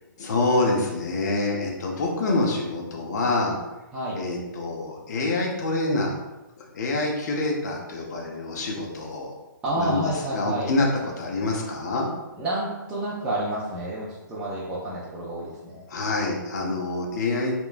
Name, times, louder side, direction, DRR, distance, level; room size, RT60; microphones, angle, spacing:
voice 1, 0.2-3.6 4.2-6.1 6.7-9.3 9.8-10.0 10.3-10.9 11.2-12.1 15.9-17.5, left 2 dB, 55° left, -1 dB, 0.6 m, -26 dB
voice 2, 9.6-10.7 12.4-15.8, right 1 dB, 5° right, -10 dB, 0.3 m, -29 dB
2.9 x 2.2 x 2.4 m, 1.1 s
hypercardioid pair, 150°, 11 cm